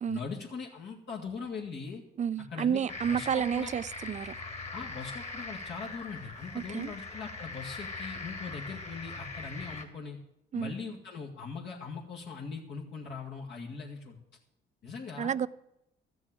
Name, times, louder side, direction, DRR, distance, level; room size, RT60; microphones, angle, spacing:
voice 1, 0.1-2.0 2.5-3.7 4.7-10.2 10.5-14.2 14.8-15.3, left 5 dB, 60° left, -3 dB, 2.1 m, -40 dB
voice 2, 2.2-4.3 6.5-6.9 10.5-10.7 15.2-15.5, right 8 dB, 35° right, 17 dB, 0.4 m, -30 dB
sound 1, 2.9-9.8, left 3 dB, 35° left, 2.2 m, -41 dB
13.5 x 6.2 x 8.9 m, 0.81 s
cardioid pair, 90°, 20 cm